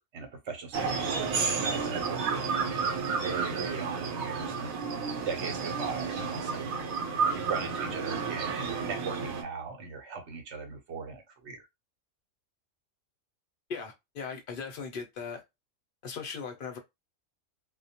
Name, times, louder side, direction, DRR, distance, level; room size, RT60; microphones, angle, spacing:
voice 1, 0.0-2.5 3.2-4.8 5.3-6.8 7.3-11.6, right 5 dB, 60° right, 0.9 m, -39 dB
sound 1, 0.7-9.4, right 5 dB, 85° right, 1.0 m, -31 dB
voice 2, 13.7-15.4 16.0-16.8, left 5 dB, 60° left, 0.6 m, -38 dB
2.2 x 2.1 x 2.7 m
omnidirectional pair, 1.4 m